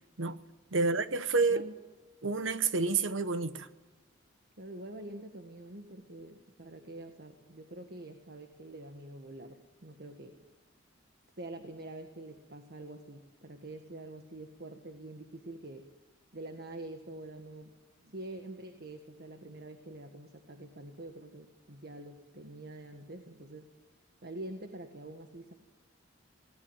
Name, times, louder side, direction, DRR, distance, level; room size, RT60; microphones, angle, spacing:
voice 1, 0.7-1.6 2.2-3.7, right 4 dB, 75° right, 1.2 m, -29 dB
voice 2, 4.6-10.4 11.4-15.9 16.3-17.7 18.0-23.7 24.2-25.5, right 1 dB, 55° right, 1.7 m, -46 dB
21.0 x 19.0 x 9.0 m
head